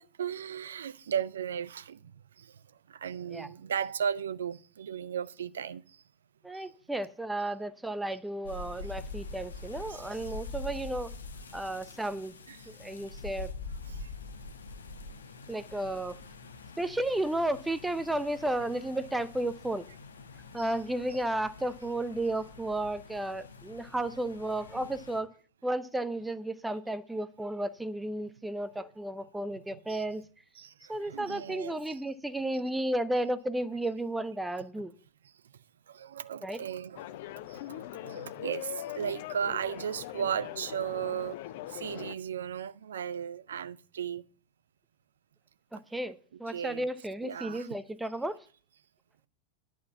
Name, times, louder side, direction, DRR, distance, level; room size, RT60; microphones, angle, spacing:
voice 1, 0.0-2.0 3.0-5.8 9.9-10.1 12.5-12.6 24.7-24.8 29.9-30.0 30.6-30.7 31.0-31.7 35.9-37.1 37.5-41.4 41.7-44.2 46.5-46.9 47.2-47.7, right 8 dB, 65° right, 0.5 m, -35 dB
voice 2, 6.4-11.1 11.5-12.3 12.7-13.5 15.5-16.2 16.8-19.8 20.5-25.3 25.6-30.2 30.9-34.9 36.4-36.6 45.7-48.4, right 1 dB, 5° right, 0.6 m, -33 dB
sound 1, 8.4-25.2, left 3 dB, 70° left, 1.0 m, -45 dB
sound 2, 37.0-42.2, left 14 dB, 50° left, 0.5 m, -41 dB
11.0 x 6.0 x 7.1 m
figure-of-eight pair, 90°, 0 cm